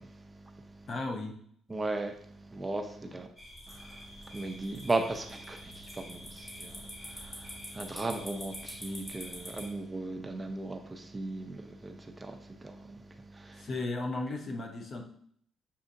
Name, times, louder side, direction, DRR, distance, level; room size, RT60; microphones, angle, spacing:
voice 1, 0.0-0.9 1.7-3.3 3.7-13.7, right 2 dB, 20° right, 0.5 m, -37 dB
voice 2, 0.9-1.4 3.0-3.1 13.6-15.0, left 2 dB, 50° left, 0.8 m, -35 dB
sound 1, 3.4-9.7, equal, 25° left, 1.7 m, -46 dB
7.1 x 2.7 x 2.6 m
cardioid pair, 90°, 0 cm